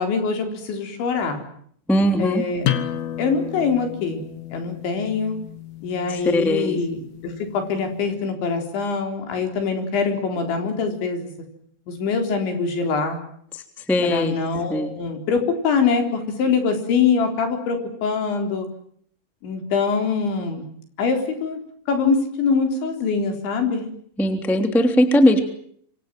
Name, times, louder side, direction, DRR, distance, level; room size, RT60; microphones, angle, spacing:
voice 1, 0.0-1.4 2.2-2.7 3.2-4.2 4.5-5.4 5.8-11.3 11.9-13.2 14.0-18.7 19.4-20.6 21.0-21.6 21.9-23.9, left 5 dB, 70° left, 5 dB, 6.1 m, -23 dB
voice 2, 1.9-2.4 6.2-6.8 13.9-14.3 14.7-14.9 24.2-25.4, left 1 dB, ahead, 6 dB, 1.9 m, -19 dB
sound 1, 2.6-8.0, left 11 dB, 90° left, 4.5 m, -32 dB
26.5 x 25.5 x 7.7 m, 0.64 s
omnidirectional pair, 5.6 m